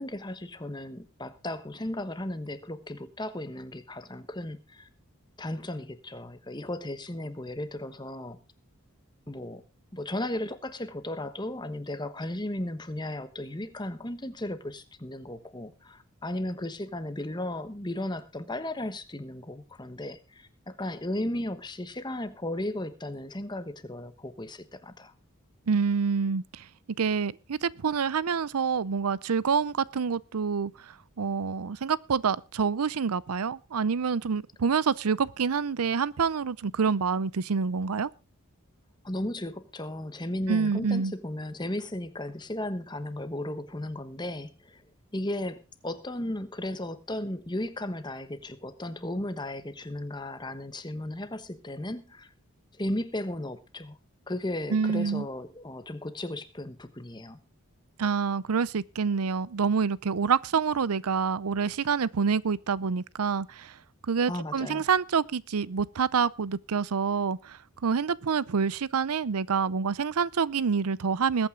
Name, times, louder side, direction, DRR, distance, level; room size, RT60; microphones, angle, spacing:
voice 1, 0.0-4.9 5.4-8.4 9.3-9.6 9.9-25.1 39.0-44.8 45.1-52.3 52.7-54.0 54.3-57.4 64.3-64.9, left 1 dB, 20° left, 1.1 m, -35 dB
voice 2, 25.7-26.7 27.0-38.1 40.5-41.1 54.7-55.3 58.0-63.8 64.1-71.5, right 6 dB, 85° right, 0.6 m, -27 dB
20.5 x 9.0 x 3.7 m
head